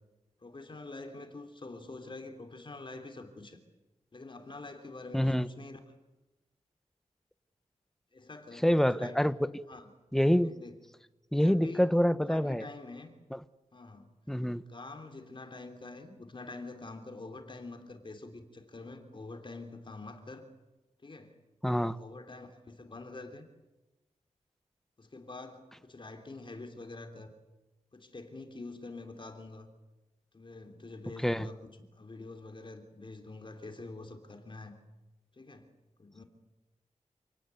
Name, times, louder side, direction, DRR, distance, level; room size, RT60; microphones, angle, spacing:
voice 1, 0.4-3.6 4.1-5.8 8.1-9.4 9.7-9.9 10.4-10.8 11.4-11.9 12.3-13.1 13.7-14.1 14.7-20.5 21.0-21.4 22.0-23.5 25.0-27.3 27.9-29.7 30.3-34.8 35.4-35.7 36.0-36.2, left 3 dB, 40° left, 6 dB, 3.4 m, -46 dB
voice 2, 5.1-5.5 8.6-9.5 10.1-10.5 11.3-12.6 13.3-13.4 14.3-14.6 21.6-22.0 31.2-31.5, equal, 5° left, 14 dB, 1.0 m, -26 dB
28.0 x 18.0 x 9.5 m, 1.1 s
wide cardioid pair, 80°, 13 cm